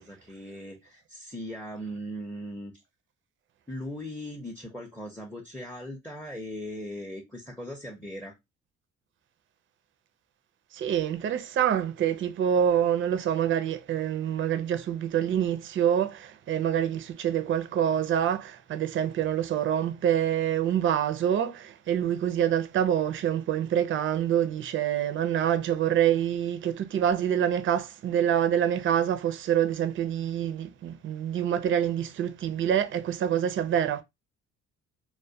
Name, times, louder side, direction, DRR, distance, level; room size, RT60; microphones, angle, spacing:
voice 1, 0.0-2.8 3.7-8.3, equal, 5° left, 0.5 m, -39 dB
voice 2, 10.7-34.0, right 9 dB, 45° right, 0.4 m, -26 dB
2.2 x 2.2 x 2.6 m
cardioid pair, 90°, 30 cm